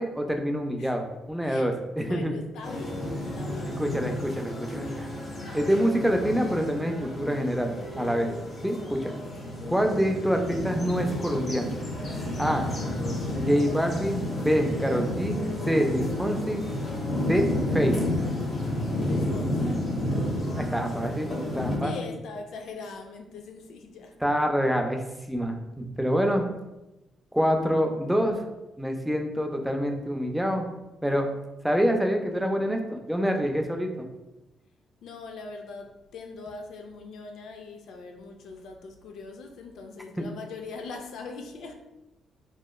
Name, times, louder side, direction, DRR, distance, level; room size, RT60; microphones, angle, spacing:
voice 1, 0.0-2.3 3.8-5.1 5.5-8.3 8.6-9.1 9.7-11.7 12.4-12.6 13.3-15.4 15.7-16.7 17.2-18.0 20.5-21.9 24.2-26.4 27.3-28.4 28.8-30.7 31.0-31.3 31.6-34.0 40.2-40.3, equal, 5° right, 3 dB, 0.3 m, -26 dB
voice 2, 2.0-3.8 9.6-9.9 19.0-19.9 21.8-24.2 35.0-41.7, left 4 dB, 75° left, 3 dB, 0.3 m, -41 dB
sound 1, 2.6-21.8, left 1 dB, 40° left, 0.6 m, -31 dB
2.9 x 2.1 x 2.2 m, 0.98 s
cardioid pair, 90°, 0 cm